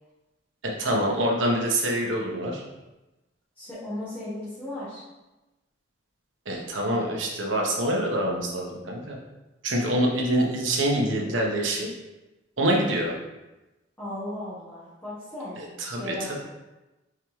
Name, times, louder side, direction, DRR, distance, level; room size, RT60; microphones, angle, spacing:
voice 1, 0.8-2.6 6.5-9.2 9.6-11.9 12.6-13.1 15.6-16.4, right 1 dB, 85° right, -1 dB, 0.9 m, -25 dB
voice 2, 3.5-5.0 14.0-15.6 16.0-16.3, left 1 dB, 10° left, -12 dB, 1.1 m, -36 dB
4.6 x 3.6 x 3.1 m, 1.0 s
head